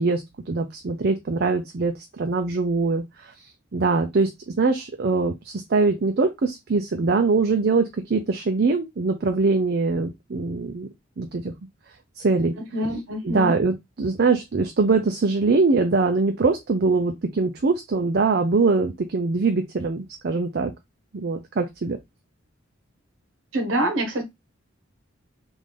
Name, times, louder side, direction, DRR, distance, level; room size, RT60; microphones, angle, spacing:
voice 1, 0.0-10.9 11.2-11.5 12.2-12.5 13.2-20.7 21.1-22.0, right 3 dB, 50° right, 0.5 m, -23 dB
voice 2, 12.6-13.5 23.5-24.2, right 1 dB, 70° right, 1.0 m, -26 dB
3.7 x 2.5 x 3.3 m
head